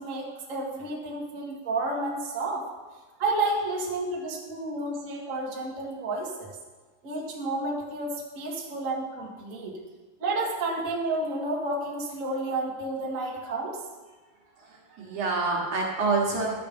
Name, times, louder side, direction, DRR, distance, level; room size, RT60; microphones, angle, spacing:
voice 1, 0.0-2.6 3.2-6.5 7.0-9.8 10.2-13.8, right 2 dB, 40° right, -3 dB, 1.1 m, -31 dB
voice 2, 14.6-16.5, right 3 dB, 55° right, -2 dB, 2.6 m, -27 dB
12.5 x 7.5 x 5.3 m, 1.3 s
omnidirectional pair, 4.9 m